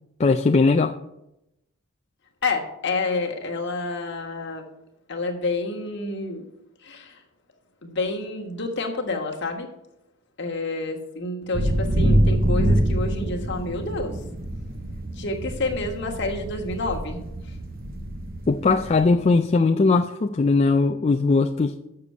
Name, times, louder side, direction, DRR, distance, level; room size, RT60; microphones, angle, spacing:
voice 1, 0.2-1.0 18.5-21.8, left 3 dB, 30° left, 4 dB, 0.3 m, -19 dB
voice 2, 2.4-4.6 5.1-6.5 6.8-7.2 7.8-9.7 10.4-14.2 15.1-17.6, left 2 dB, 55° left, 2 dB, 1.4 m, -29 dB
sound 1, 11.5-19.1, right 1 dB, 40° right, 0.8 m, -25 dB
6.8 x 6.6 x 7.4 m, 0.87 s
head